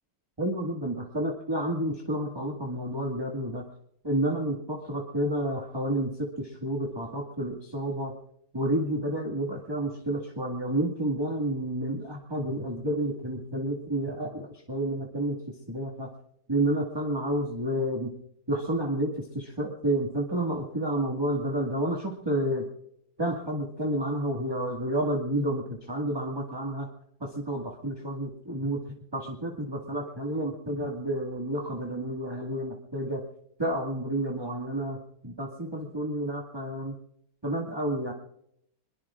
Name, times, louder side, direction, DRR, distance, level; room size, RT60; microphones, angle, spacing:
voice 1, 0.4-3.6 4.0-8.1 8.5-15.4 15.7-16.1 16.5-18.1 18.5-22.7 23.2-26.9 27.2-28.8 29.1-33.2 33.6-35.0 35.2-37.0 37.4-38.1, right 1 dB, 15° right, -1 dB, 1.9 m, -30 dB
27.0 x 21.5 x 2.5 m, 0.74 s
omnidirectional pair, 1.9 m